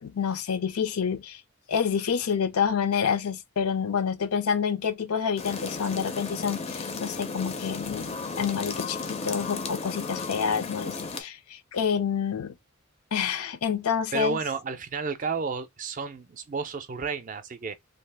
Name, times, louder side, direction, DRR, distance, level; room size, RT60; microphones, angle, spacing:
voice 1, 0.0-1.4 1.7-12.5 13.1-14.4, left 7 dB, 80° left, 0.5 m, -28 dB
sound 1, 5.4-11.2, left 4 dB, 30° left, 0.4 m, -34 dB
voice 2, 14.1-17.7, right 5 dB, 35° right, 0.4 m, -31 dB
2.7 x 2.4 x 3.3 m
head